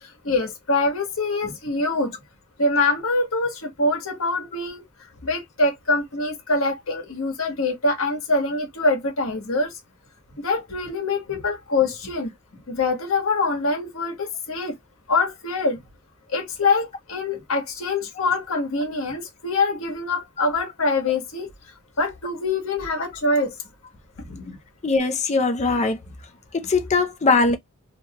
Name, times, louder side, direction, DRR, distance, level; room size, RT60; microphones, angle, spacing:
voice 1, 0.2-2.2 2.6-4.8 5.2-9.7 10.4-12.3 12.7-14.8 15.1-15.8 16.3-21.5 22.0-23.5 24.2-24.6, left 3 dB, 70° left, 1.2 m, -24 dB
voice 2, 24.8-26.0 26.5-27.6, left 3 dB, 35° left, 0.5 m, -20 dB
2.9 x 2.3 x 2.9 m
head